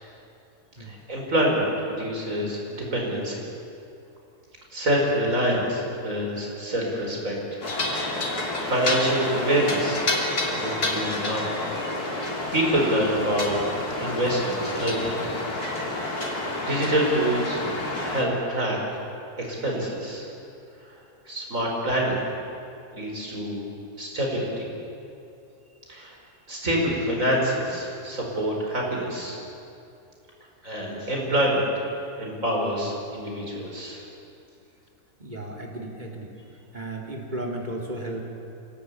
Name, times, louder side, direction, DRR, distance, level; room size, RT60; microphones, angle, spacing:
voice 1, 0.9-3.4 4.7-7.6 8.1-10.1 10.5-11.5 12.0-13.6 14.0-15.1 16.2-17.6 18.0-18.8 19.4-20.3 21.3-22.2 22.9-23.6 24.0-24.7 25.9-26.2 26.5-29.4 30.6-31.8 32.2-34.0, right 1 dB, 60° right, -1 dB, 5.5 m, -26 dB
sound 1, 7.6-18.2, left 2 dB, 80° left, 3.6 m, -29 dB
voice 2, 35.2-36.3 36.7-38.2, right 1 dB, 30° right, -1 dB, 3.5 m, -34 dB
26.0 x 17.5 x 8.7 m, 2.7 s
omnidirectional pair, 1.6 m